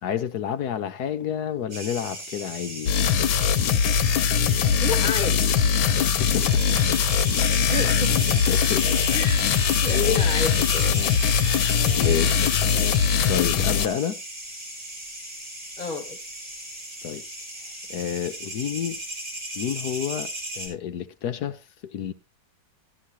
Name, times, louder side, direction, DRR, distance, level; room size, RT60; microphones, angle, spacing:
voice 1, 0.0-2.9 6.2-7.0 8.0-8.2 8.5-9.1 11.4-12.5 13.3-14.2 17.0-17.2 17.9-19.0 19.6-20.3 20.6-22.1, left 9 dB, 65° left, 1.2 m, -30 dB
sound 1, 1.7-20.7, right 1 dB, 70° right, 5.3 m, -36 dB
sound 2, 2.9-13.9, left 7 dB, 90° left, 1.6 m, -21 dB
voice 2, 4.8-5.5 7.7-8.1 8.9-10.9 15.8-16.2, left 4 dB, 25° left, 1.4 m, -30 dB
sound 3, 6.6-12.6, left 1 dB, 5° right, 2.6 m, -42 dB
13.5 x 11.5 x 2.8 m
omnidirectional pair, 2.1 m